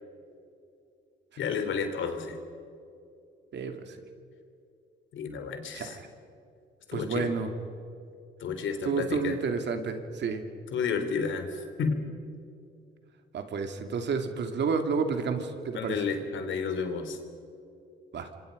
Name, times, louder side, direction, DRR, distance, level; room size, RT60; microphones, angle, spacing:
voice 1, 1.4-2.4 5.1-6.0 6.9-7.3 8.4-9.4 10.7-12.0 15.7-17.2, left 5 dB, 75° left, 7 dB, 3.3 m, -31 dB
voice 2, 3.5-4.0 5.7-6.1 6.9-7.5 8.8-10.4 13.3-16.0 18.1-18.3, right 5 dB, 60° right, 6 dB, 2.6 m, -30 dB
27.0 x 25.5 x 5.3 m, 2.5 s
cardioid pair, 90°, 20 cm